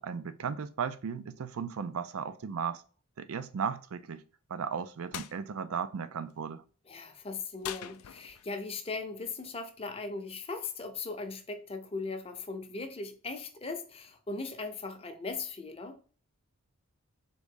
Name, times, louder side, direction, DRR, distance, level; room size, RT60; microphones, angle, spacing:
voice 1, 0.0-2.8 3.2-4.2 4.5-6.6, right 6 dB, 75° right, 0.4 m, -35 dB
sound 1, 5.1-5.4 7.6-8.6, left 11 dB, 85° left, 0.4 m, -41 dB
voice 2, 6.9-16.0, left 3 dB, 25° left, 0.6 m, -38 dB
3.8 x 3.5 x 3.7 m
head